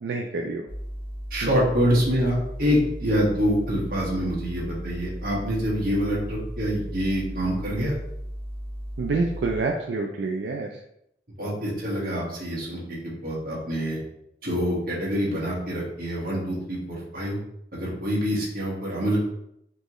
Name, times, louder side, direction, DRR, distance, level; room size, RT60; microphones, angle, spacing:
voice 1, 0.0-0.6 9.0-10.7, right 3 dB, 85° right, 1 dB, 0.4 m, -27 dB
sound 1, 0.7-9.6, equal, 10° right, 0.7 m, -36 dB
voice 2, 1.3-7.9 11.4-14.0 14.4-17.4 17.7-19.2, equal, 55° right, -5 dB, 1.5 m, -26 dB
4.5 x 2.9 x 3.0 m, 0.76 s
head